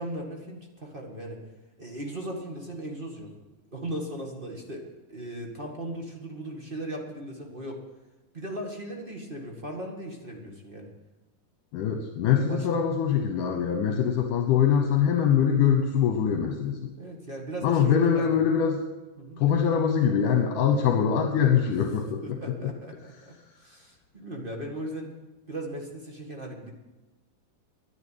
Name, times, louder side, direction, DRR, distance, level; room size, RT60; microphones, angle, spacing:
voice 1, 0.0-1.4 1.8-3.3 3.7-7.8 8.3-10.9 12.3-12.7 16.9-18.4 19.2-19.4 22.2-25.1 25.5-26.7, right 1 dB, 25° right, 0 dB, 1.1 m, -37 dB
voice 2, 11.7-16.8 17.6-18.8 19.4-22.7, left 8 dB, 75° left, 4 dB, 2.5 m, -23 dB
11.0 x 10.5 x 9.2 m, 1.1 s
omnidirectional pair, 3.9 m